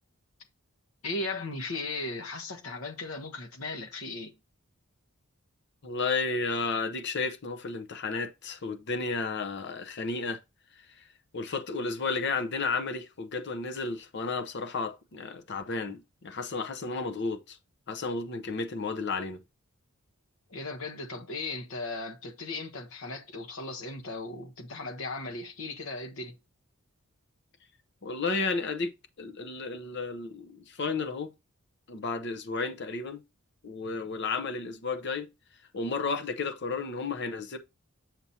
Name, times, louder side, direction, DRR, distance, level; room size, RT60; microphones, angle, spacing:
voice 1, 1.0-4.3 20.5-26.3, left 2 dB, 70° left, 1.1 m, -37 dB
voice 2, 5.8-10.4 11.3-17.6 17.9-19.4 28.0-28.9 29.2-31.3 31.9-33.2 33.6-35.3 35.7-37.6, left 4 dB, 50° left, 0.7 m, -32 dB
7.0 x 5.9 x 2.8 m
head